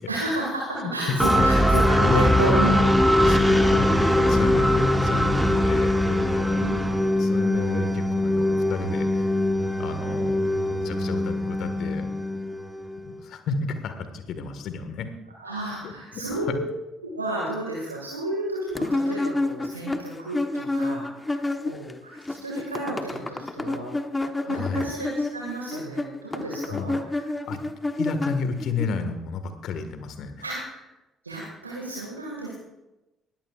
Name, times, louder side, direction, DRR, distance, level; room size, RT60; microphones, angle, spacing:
voice 1, 0.1-3.9 6.6-6.8 15.4-16.7 17.0-24.0 24.4-27.3 30.4-30.9 31.2-32.5, right 1 dB, 90° right, -3 dB, 2.0 m, -32 dB
sound 1, 1.2-13.0, left 1 dB, ahead, 1.8 m, -21 dB
voice 2, 3.2-6.7 7.2-9.3 9.8-12.3 13.0-15.1 15.8-16.5 24.4-24.9 26.7-26.9 27.4-27.6 28.0-30.4, left 5 dB, 55° left, 8 dB, 1.7 m, -32 dB
sound 2, 18.8-21.9 22.2-28.9, left 2 dB, 15° left, 1.1 m, -29 dB
20.0 x 15.5 x 2.5 m, 0.99 s
figure-of-eight pair, 50°, 0 cm